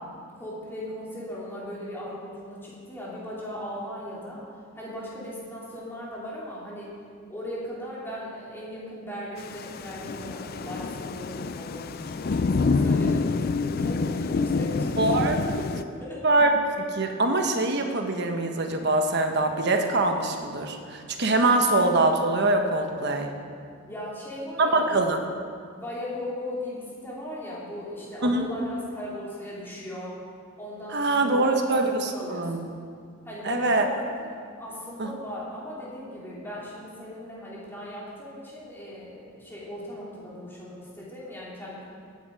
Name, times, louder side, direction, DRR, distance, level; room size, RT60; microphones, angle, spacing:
voice 1, 0.0-4.5 4.7-6.9 7.3-15.7 16.0-16.3 23.9-25.1 25.8-30.2 30.6-32.6 33.2-41.9, left 1 dB, 10° left, -7 dB, 3.5 m, -38 dB
Thunder / Rain, 9.4-15.8, left 4 dB, 45° left, 0.4 m, -27 dB
voice 2, 15.0-15.4 16.2-16.5 16.8-23.3 24.6-25.2 28.2-28.4 30.9-32.6 33.4-33.8 35.0-35.1, right 2 dB, 50° right, 4 dB, 1.2 m, -23 dB
17.0 x 9.6 x 4.9 m, 2.2 s
head